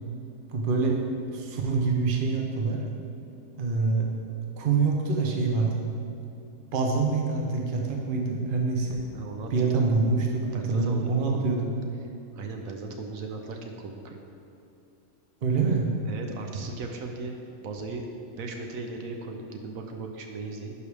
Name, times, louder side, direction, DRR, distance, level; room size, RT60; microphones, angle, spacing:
voice 1, 0.5-1.0 1.3-2.8 3.5-4.1 4.6-5.8 6.7-9.0 9.5-11.7 15.4-15.9, right 4 dB, 45° right, 1 dB, 0.9 m, -25 dB
voice 2, 9.1-9.7 10.5-11.5 12.3-14.2 16.1-18.0 18.4-20.7, right 3 dB, 80° right, 3 dB, 1.1 m, -37 dB
11.5 x 4.9 x 3.4 m, 2.6 s
omnidirectional pair, 1.4 m